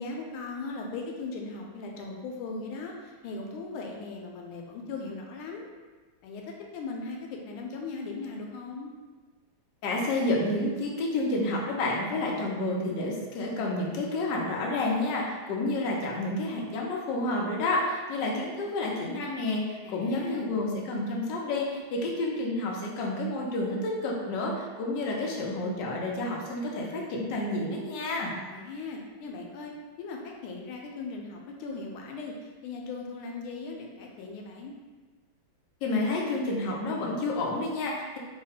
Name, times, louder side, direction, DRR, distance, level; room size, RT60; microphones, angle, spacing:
voice 1, 0.0-5.7 6.2-8.9 19.8-20.6 28.3-29.7 30.0-32.3 32.6-34.7, left 3 dB, 85° left, 0 dB, 1.4 m, -38 dB
voice 2, 9.8-28.3 35.8-38.2, left 2 dB, 70° left, -2 dB, 1.1 m, -30 dB
3.5 x 2.1 x 3.9 m, 1.3 s
omnidirectional pair, 2.3 m